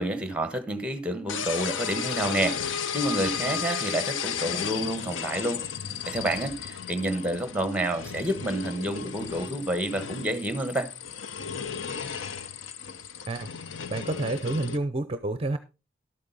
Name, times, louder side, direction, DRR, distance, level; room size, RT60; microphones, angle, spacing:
voice 1, 0.0-5.6 6.1-10.9, right 1 dB, 5° right, 1.3 m, -29 dB
sound 1, 1.3-14.8, left 7 dB, 80° left, 0.7 m, -34 dB
voice 2, 13.9-15.6, right 2 dB, 30° right, 0.6 m, -29 dB
12.0 x 8.6 x 4.0 m
head